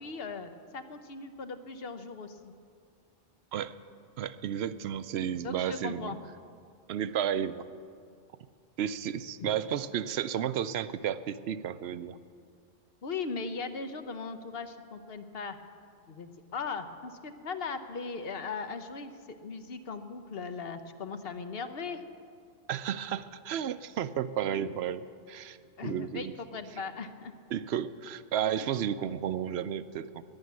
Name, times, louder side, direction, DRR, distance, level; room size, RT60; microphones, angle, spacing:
voice 1, 0.0-2.5 5.4-6.2 9.4-9.5 13.0-15.6 16.1-19.1 19.4-22.0 25.8-27.3, left 4 dB, 60° left, 9 dB, 1.1 m, -38 dB
voice 2, 4.2-6.1 6.9-7.6 8.8-12.2 22.7-25.6 25.8-26.3 27.5-30.2, right 9 dB, 75° right, 14 dB, 0.8 m, -32 dB
12.0 x 10.5 x 9.4 m, 2.2 s
omnidirectional pair, 1.1 m